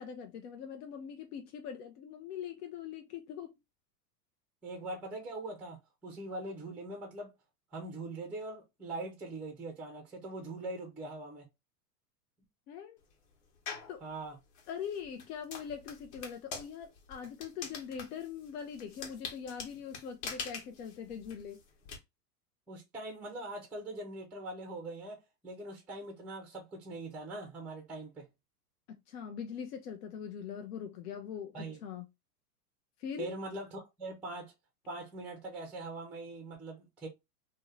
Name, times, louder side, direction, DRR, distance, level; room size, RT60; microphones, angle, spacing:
voice 1, 0.0-3.5 12.7-13.0 13.9-14.0 14.7-21.6 28.9-32.1 33.0-33.3, left 7 dB, 75° left, 0.7 m, -42 dB
voice 2, 4.6-7.3 7.7-11.5 14.0-14.4 22.7-28.2 31.5-31.8 33.2-34.5 34.9-37.1, right 2 dB, 5° right, 0.4 m, -42 dB
sound 1, 13.7-14.0 14.5-22.0, left 5 dB, 50° left, 1.1 m, -44 dB
2.7 x 2.1 x 3.7 m
hypercardioid pair, 130°, 47 cm